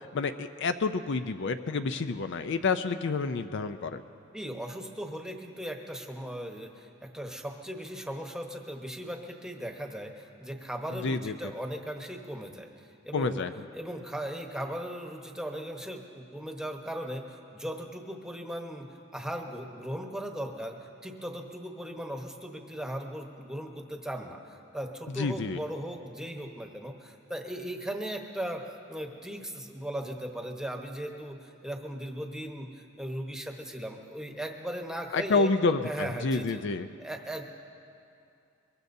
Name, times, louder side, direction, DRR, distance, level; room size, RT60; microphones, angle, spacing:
voice 1, 0.0-4.0 11.0-11.3 13.1-13.5 25.2-25.6 35.1-36.9, left 4 dB, 60° left, 10 dB, 0.5 m, -29 dB
voice 2, 4.3-12.7 13.0-13.4 13.7-18.9 19.1-28.6 28.9-35.5 35.8-36.6 37.0-37.4, right 1 dB, 5° right, 2 dB, 1.1 m, -38 dB
23.0 x 22.0 x 2.7 m, 2.6 s
head